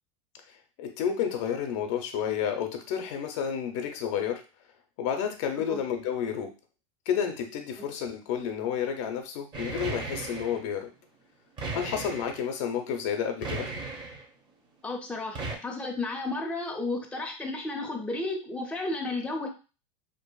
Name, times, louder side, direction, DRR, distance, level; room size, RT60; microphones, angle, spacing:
voice 1, 0.8-4.4 5.0-6.5 7.1-10.9 11.7-13.7, left 8 dB, 65° left, 6 dB, 0.5 m, -30 dB
sound 1, 9.5-10.6 11.6-12.4 13.4-14.2 15.3-15.6, right 3 dB, 30° right, 0.7 m, -36 dB
voice 2, 14.8-19.5, left 2 dB, 5° left, 2 dB, 0.5 m, -33 dB
2.6 x 2.4 x 2.3 m, 0.33 s
hypercardioid pair, 105°, 17 cm